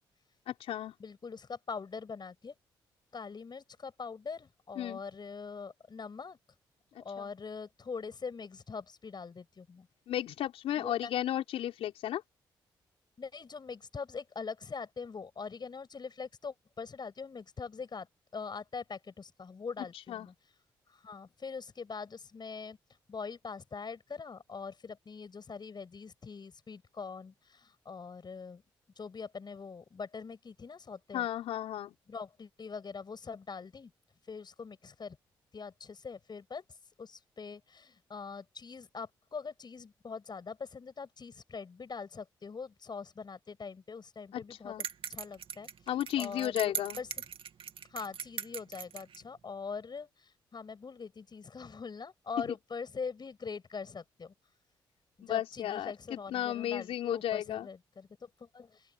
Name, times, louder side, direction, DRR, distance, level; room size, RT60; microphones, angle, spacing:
voice 1, 0.5-0.9 4.8-5.0 7.2-7.3 10.1-12.2 20.1-20.3 31.1-31.9 44.3-44.8 45.9-47.0 55.2-57.7, left 11 dB, 75° left, 4.3 m, -34 dB
voice 2, 1.0-2.6 3.1-6.4 6.9-9.9 10.8-11.1 13.2-18.1 18.3-20.3 20.9-22.8 23.1-28.6 29.0-31.3 32.1-33.9 34.3-35.2 35.5-44.7 45.1-47.1 47.9-54.3 55.3-58.9, left 5 dB, 45° left, 7.5 m, -43 dB
sound 1, 44.8-49.2, right 8 dB, 60° right, 2.4 m, -40 dB
open air
supercardioid pair, 50°, 10 cm